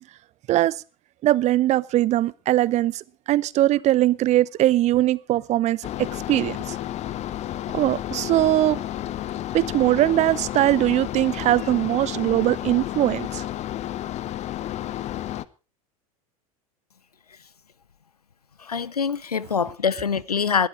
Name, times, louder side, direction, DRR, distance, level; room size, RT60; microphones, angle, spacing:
voice 1, 1.2-6.8 7.7-8.8 9.5-13.4, right 14 dB, 35° right, 0.7 m, -21 dB
sound 1, 5.8-15.5, left 13 dB, 35° left, 0.8 m, -31 dB
voice 2, 18.6-20.7, left 6 dB, 90° left, 0.6 m, -24 dB
20.5 x 12.5 x 3.3 m
figure-of-eight pair, 80°, 19 cm